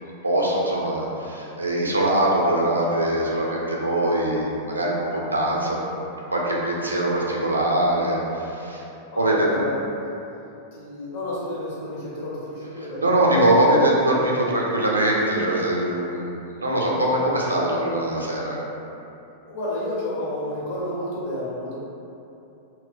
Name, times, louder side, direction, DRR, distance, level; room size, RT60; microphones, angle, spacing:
voice 1, 0.0-5.9 6.3-8.8 9.1-9.5 13.0-18.6, right 1 dB, 80° right, -3 dB, 0.4 m, -22 dB
voice 2, 9.1-9.8 10.7-13.2 19.5-21.8, left 1 dB, 55° left, -7 dB, 0.9 m, -30 dB
2.1 x 2.1 x 3.7 m, 2.8 s
figure-of-eight pair, 95°, 0 cm